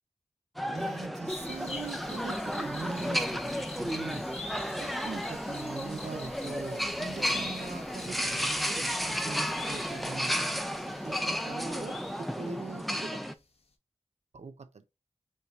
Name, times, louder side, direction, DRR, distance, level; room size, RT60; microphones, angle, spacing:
sound 1, 0.6-13.3, equal, ahead, 0.5 m, -33 dB
voice 1, 0.7-4.2 4.8-13.2 14.3-14.9, right 4 dB, 85° right, 0.6 m, -42 dB
sound 2, 1.3-13.0 13.2-13.3, left 3 dB, 65° left, 0.8 m, -46 dB
5.3 x 3.2 x 2.4 m
wide cardioid pair, 70°, 11 cm